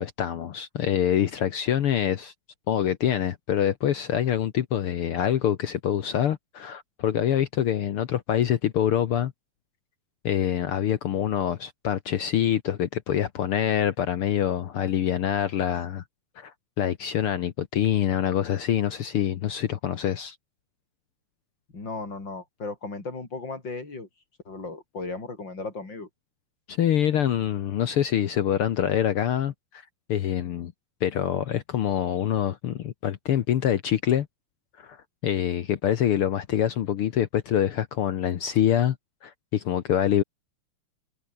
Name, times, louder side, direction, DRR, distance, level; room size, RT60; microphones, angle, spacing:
voice 1, 0.0-2.3 2.7-9.3 10.2-16.0 16.4-20.4 26.7-29.5 30.1-30.7 31.0-34.3 34.8-35.0 35.2-39.0 39.2-40.2, left 10 dB, 75° left, 1.3 m, -25 dB
voice 2, 21.7-24.1 24.5-26.1, left 3 dB, 30° left, 5.6 m, -36 dB
omnidirectional pair, 3.9 m